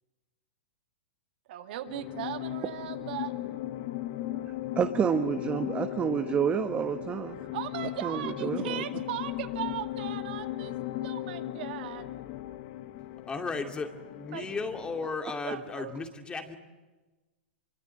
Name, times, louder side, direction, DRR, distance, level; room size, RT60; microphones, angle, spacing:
voice 1, 1.5-3.5 7.4-12.1 14.3-14.5 15.4-15.9 16.4-16.6, right 12 dB, 60° right, 6 dB, 2.3 m, -38 dB
sound 1, 1.9-15.2, left 14 dB, 50° left, 1.4 m, -37 dB
voice 2, 4.7-7.4 8.0-8.8, right 7 dB, 25° right, 6 dB, 1.3 m, -29 dB
voice 3, 13.3-16.6, left 4 dB, 15° left, 5 dB, 2.4 m, -35 dB
25.0 x 23.5 x 9.0 m, 1.2 s
hypercardioid pair, 125°, 6 cm